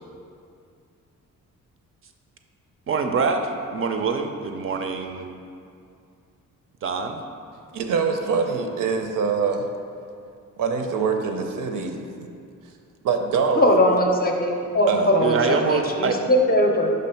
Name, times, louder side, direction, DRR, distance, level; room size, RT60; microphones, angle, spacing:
voice 1, 2.9-5.3 6.8-7.2 15.2-16.2, right 5 dB, 45° right, 5 dB, 0.4 m, -24 dB
voice 2, 7.7-9.6 10.6-12.0 13.0-13.6 14.9-15.1, right 5 dB, 80° right, 5 dB, 0.6 m, -24 dB
voice 3, 13.5-16.9, left 1 dB, 30° left, 1 dB, 0.5 m, -20 dB
5.2 x 3.6 x 5.6 m, 2.4 s
wide cardioid pair, 165°, 32 cm